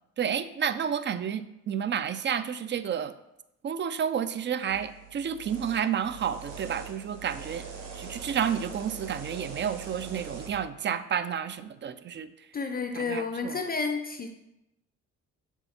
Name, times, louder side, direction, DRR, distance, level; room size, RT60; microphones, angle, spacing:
voice 1, 0.2-3.1 3.6-7.7 7.9-12.3 12.9-13.6, right 8 dB, 40° right, 13 dB, 0.4 m, -30 dB
sound 1, 4.7-10.5, right 5 dB, 80° right, 1.4 m, -42 dB
voice 2, 12.5-14.3, left 4 dB, 30° left, 5 dB, 0.5 m, -31 dB
6.8 x 3.6 x 4.2 m, 0.89 s
cardioid pair, 90°, 30 cm